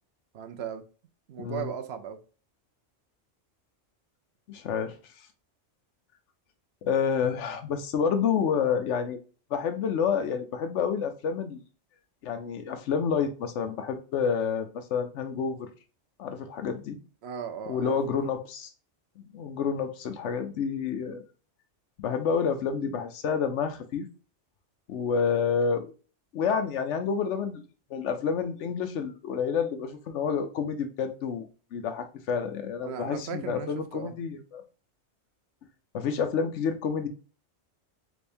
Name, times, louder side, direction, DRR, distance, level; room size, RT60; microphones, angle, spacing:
voice 1, 0.3-0.8 1.3-2.2 17.2-18.3 32.8-34.1, right 8 dB, 70° right, 0.9 m, -37 dB
voice 2, 1.4-1.7 4.5-5.0 6.8-9.2 9.5-11.6 12.2-15.7 16.2-17.0 17.7-18.7 19.2-21.2 22.0-24.1 24.9-25.9 26.3-27.6 27.9-34.6 35.9-37.1, left 6 dB, 85° left, 1.0 m, -29 dB
3.4 x 3.4 x 2.6 m
omnidirectional pair, 1.2 m